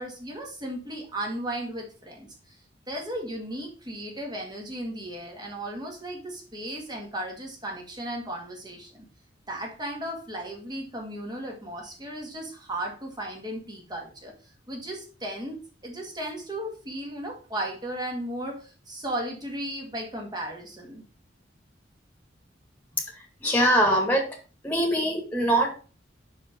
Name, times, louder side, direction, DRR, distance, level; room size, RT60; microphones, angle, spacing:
voice 1, 0.0-2.6 2.9-9.0 9.5-14.3 14.7-21.0, right 1 dB, 25° right, 1 dB, 2.0 m, -35 dB
voice 2, 23.1-24.2 24.6-25.7, right 1 dB, 10° left, 1 dB, 1.9 m, -23 dB
5.6 x 5.4 x 5.1 m, 0.37 s
head